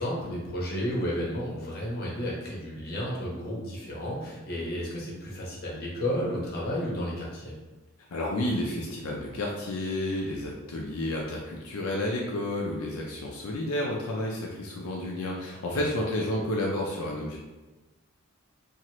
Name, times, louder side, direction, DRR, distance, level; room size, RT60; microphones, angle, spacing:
voice 1, 0.0-7.6 15.7-15.9, equal, 50° left, -4 dB, 0.9 m, -32 dB
voice 2, 8.1-17.4, left 1 dB, 85° left, -2 dB, 0.4 m, -31 dB
2.9 x 2.5 x 2.9 m, 1.1 s
head